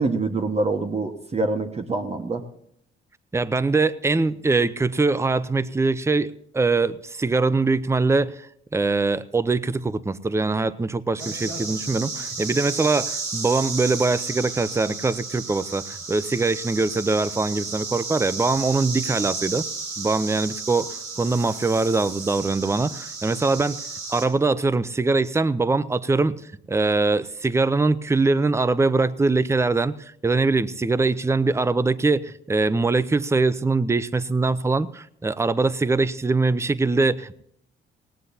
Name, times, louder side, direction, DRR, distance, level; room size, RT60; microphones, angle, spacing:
voice 1, 0.0-2.4, right 3 dB, 30° right, 4 dB, 1.5 m, -25 dB
voice 2, 3.3-19.6 20.0-23.8 24.1-26.4 26.7-37.4, right 3 dB, 15° right, 16 dB, 0.6 m, -22 dB
sound 1, 11.2-24.3, right 4 dB, 75° right, 4.9 m, -33 dB
18.5 x 18.0 x 2.8 m, 0.71 s
cardioid pair, 90°, 20 cm